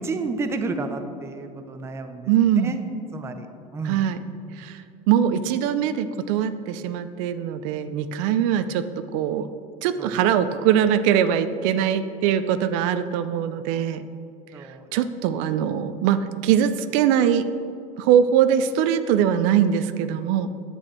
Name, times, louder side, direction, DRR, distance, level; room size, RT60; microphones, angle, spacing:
voice 1, 0.0-2.3 2.6-2.8 3.1-3.5 3.7-4.0 10.0-10.2 14.5-15.0, right 3 dB, 15° right, 7 dB, 0.5 m, -31 dB
voice 2, 2.3-2.8 3.8-4.2 4.6-4.8 5.1-8.8 9.1-9.5 9.8-14.0 14.9-17.5 18.0-20.5, right 9 dB, 70° right, 11 dB, 0.5 m, -22 dB
8.9 x 8.0 x 4.3 m, 2.4 s
cardioid pair, 145°, 18 cm